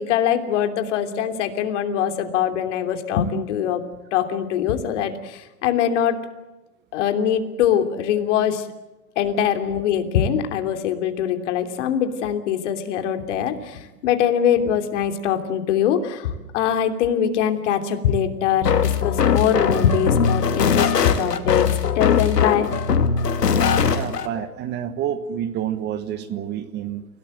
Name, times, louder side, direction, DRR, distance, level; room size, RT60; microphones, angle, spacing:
voice 1, 0.0-3.8 4.1-6.2 6.9-8.7 9.2-21.7 21.9-22.7, left 9 dB, 50° left, 7 dB, 3.1 m, -22 dB
sound 1, 18.6-24.3, left 6 dB, 85° left, 2.7 m, -20 dB
voice 2, 23.9-27.1, right 10 dB, 20° right, 11 dB, 1.3 m, -28 dB
29.5 x 18.0 x 7.8 m, 1.1 s
hypercardioid pair, 140°, 47 cm